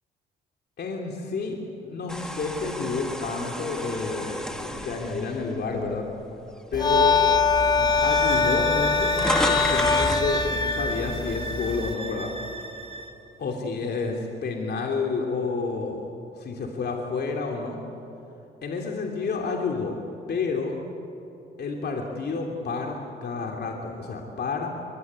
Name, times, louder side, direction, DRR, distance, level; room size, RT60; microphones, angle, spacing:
voice 1, 0.8-1.6 1.8-6.1 6.7-7.2 7.8-12.3 13.4-16.1 16.4-17.8 18.6-20.0 20.3-20.7 21.6-24.7, left 4 dB, 55° left, 1 dB, 3.1 m, -29 dB
sound 1, 2.1-6.3 6.8-7.0 7.9-8.0 8.2-10.3, equal, 5° left, 2.4 m, -32 dB
sound 2, 6.7-11.9, left 5 dB, 20° left, 1.3 m, -23 dB
sound 3, 7.8-13.2, right 3 dB, 30° right, 3.8 m, -34 dB
23.0 x 22.0 x 9.5 m, 3.0 s
cardioid pair, 90°, 20 cm